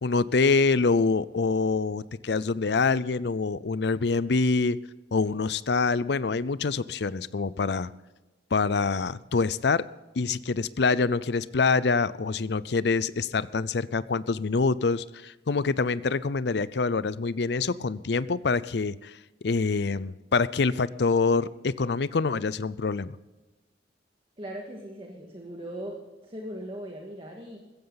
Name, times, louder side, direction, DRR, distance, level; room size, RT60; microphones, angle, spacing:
voice 1, 0.0-4.8 5.1-7.9 8.5-9.8 10.2-19.2 19.4-23.2, left 4 dB, 65° left, 17 dB, 0.5 m, -25 dB
voice 2, 24.4-26.0 26.2-27.6, equal, 30° right, 0 dB, 1.9 m, -39 dB
16.0 x 15.0 x 4.0 m, 1.1 s
head